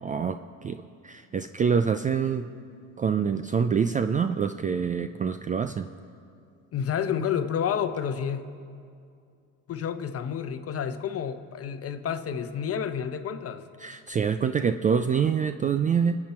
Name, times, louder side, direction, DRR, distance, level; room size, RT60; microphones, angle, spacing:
voice 1, 0.0-2.5 3.0-5.9 13.8-16.2, right 6 dB, 20° right, 9 dB, 0.4 m, -26 dB
voice 2, 6.7-8.4 9.7-13.6, left 8 dB, 40° left, 10 dB, 1.0 m, -30 dB
24.0 x 8.7 x 4.4 m, 2.3 s
supercardioid pair, 95°, 38 cm